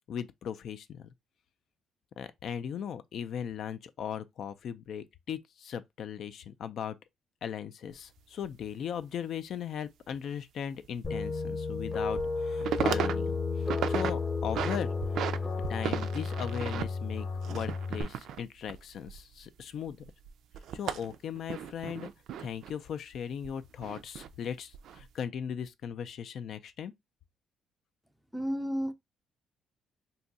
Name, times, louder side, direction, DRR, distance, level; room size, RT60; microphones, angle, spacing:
voice 1, 0.1-1.1 2.2-7.0 7.4-15.3 15.7-20.0 20.7-22.1 22.4-26.9, left 8 dB, 60° left, 0.4 m, -38 dB
sound 1, 7.9-8.0 8.4-8.5 10.7-10.9 11.3-11.4 11.9-12.3 12.6-13.1 13.5-14.1 14.4-15.4 15.6-19.6 19.9-22.7 23.4-24.3 24.7-25.0, right 9 dB, 70° right, 0.3 m, -35 dB
sound 2, 11.0-18.0, left 4 dB, 25° left, 0.8 m, -32 dB
voice 2, 28.3-28.9, equal, ahead, 0.4 m, -31 dB
2.6 x 2.3 x 3.9 m
cardioid pair, 115°, 0 cm